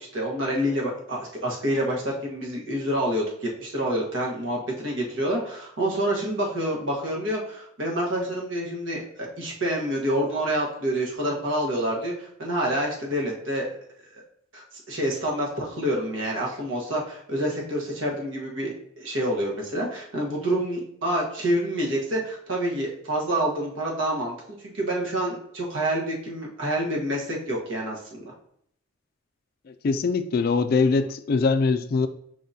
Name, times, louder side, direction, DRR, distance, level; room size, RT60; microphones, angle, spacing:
voice 1, 0.0-13.7 14.1-14.2 14.5-24.3 24.6-28.3, right 1 dB, 75° right, -2 dB, 1.3 m, -27 dB
voice 2, 29.7-32.1, left 4 dB, 45° left, 9 dB, 0.3 m, -22 dB
4.9 x 3.7 x 2.7 m, 0.68 s
head